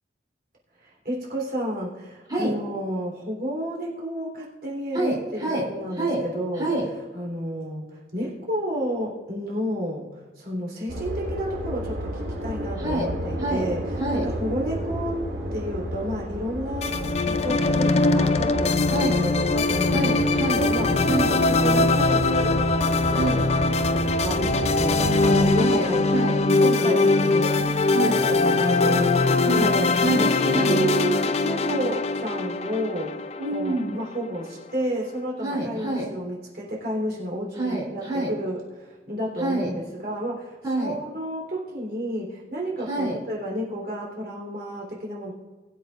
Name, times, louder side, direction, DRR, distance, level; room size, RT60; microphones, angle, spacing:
voice 1, 0.8-6.7 7.1-15.2 15.5-21.0 21.5-22.6 23.1-23.5 23.9-27.2 28.0-29.9 30.2-45.3, equal, 55° right, -3 dB, 3.4 m, -31 dB
voice 2, 4.9-5.6 5.9-6.2 6.5-6.9 12.8-13.1 13.4-13.7 14.0-14.3 18.9-19.2 19.9-20.7 21.0-21.4 23.1-23.4 25.6-28.2 29.4-30.8 33.4-34.0 35.4-36.1 37.5-38.3 39.4-39.7 40.6-40.9 42.9-43.2, right 1 dB, 20° right, -5 dB, 3.2 m, -27 dB
sound 1, 10.9-25.5, equal, 85° right, 2.3 m, -32 dB
sound 2, 16.8-34.2, left 3 dB, 35° left, 0.5 m, -22 dB
21.0 x 7.8 x 2.5 m, 1.3 s
head